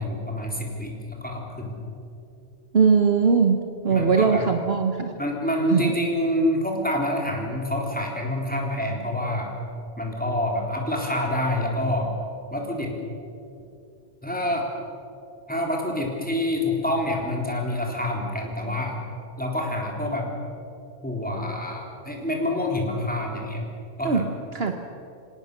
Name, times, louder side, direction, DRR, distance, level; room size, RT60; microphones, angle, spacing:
voice 1, 0.0-1.8 3.9-4.4 5.2-9.5 10.0-12.1 12.5-12.9 14.2-14.7 15.5-19.0 19.4-20.3 21.0-23.6 24.0-24.2, left 1 dB, 5° left, -1 dB, 3.7 m, -27 dB
voice 2, 2.7-5.1 5.7-5.9 24.0-24.3 24.5-24.7, right 5 dB, 55° right, 5 dB, 1.3 m, -20 dB
26.0 x 18.0 x 6.7 m, 2.6 s
omnidirectional pair, 1.3 m